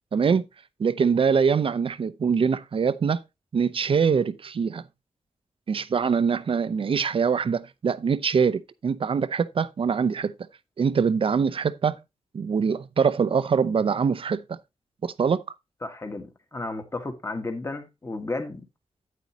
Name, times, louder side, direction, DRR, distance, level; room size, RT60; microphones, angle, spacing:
voice 1, 0.1-0.4 0.8-3.2 3.5-4.8 5.7-10.3 10.8-12.0 12.3-14.6 15.0-15.4, right 6 dB, 55° right, 0.6 m, -23 dB
voice 2, 15.8-18.6, left 2 dB, 25° left, 1.5 m, -33 dB
9.4 x 8.5 x 2.8 m
wide cardioid pair, 100°, 11 cm